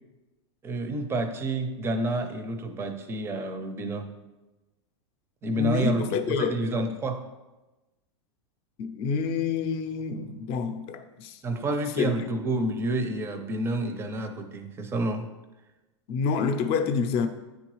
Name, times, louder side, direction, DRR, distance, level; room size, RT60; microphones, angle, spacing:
voice 1, 0.6-4.1 5.4-7.2 11.4-15.2, right 2 dB, 15° right, 0.5 m, -29 dB
voice 2, 5.6-6.6 8.8-11.4 12.0-12.1 16.1-17.3, left 6 dB, 40° left, 0.6 m, -27 dB
9.4 x 3.9 x 3.1 m
supercardioid pair, 145°, 16 cm